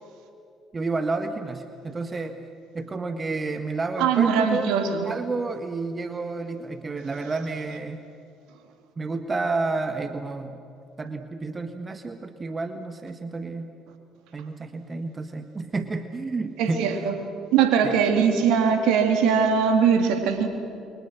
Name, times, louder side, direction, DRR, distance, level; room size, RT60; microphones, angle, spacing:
voice 1, 0.7-2.4 2.7-4.7 5.0-8.0 9.0-10.6 11.0-13.7 14.3-16.9 17.8-17.9, right 3 dB, 30° right, 8 dB, 1.6 m, -30 dB
voice 2, 4.0-5.1 16.6-17.2 17.5-20.5, right 6 dB, 70° right, 6 dB, 2.8 m, -21 dB
29.0 x 24.5 x 6.4 m, 2.5 s
hypercardioid pair, 55°, 0 cm